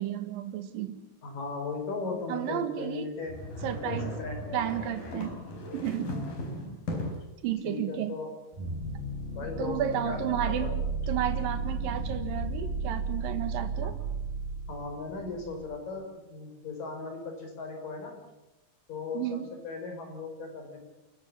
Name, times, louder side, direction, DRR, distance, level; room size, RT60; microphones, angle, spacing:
voice 1, 0.0-1.0 2.3-3.1 3.6-4.1 4.5-5.4 5.7-6.2 7.4-8.1 9.6-10.7 11.1-14.0 19.1-19.5, right 10 dB, 90° right, 10 dB, 3.2 m, -32 dB
voice 2, 1.2-3.3 3.6-4.6 7.6-8.3 9.4-9.8 10.0-10.2 10.4-10.8 13.2-13.4 13.8-13.9 14.7-18.1 18.9-19.4 19.6-20.8, left 4 dB, 70° left, 4 dB, 6.7 m, -37 dB
sound 1, 3.3-7.3, left 1 dB, 90° left, 6.4 m, -37 dB
sound 2, 8.5-15.7, right 3 dB, 70° right, 5.6 m, -34 dB
29.0 x 14.5 x 8.6 m, 0.97 s
omnidirectional pair, 3.9 m